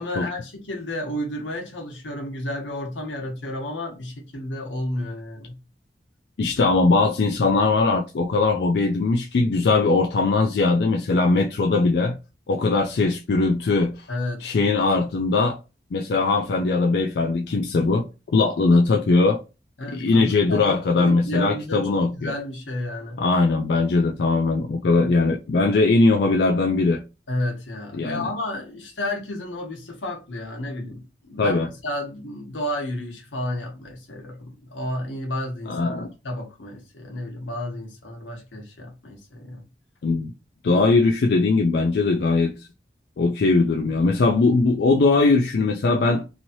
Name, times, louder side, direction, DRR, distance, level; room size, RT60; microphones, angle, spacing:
voice 1, 0.0-5.6 14.1-14.5 19.8-23.2 27.3-39.6, left 1 dB, 90° left, 1.2 m, -32 dB
voice 2, 6.4-12.2 12.5-14.1 14.4-15.6 15.9-18.0 18.3-19.4 19.9-22.3 23.2-27.0 27.9-28.3 31.4-31.7 35.7-36.1 40.0-40.3 40.6-42.5 43.2-46.2, left 3 dB, 60° left, 0.4 m, -20 dB
3.0 x 2.7 x 2.7 m
head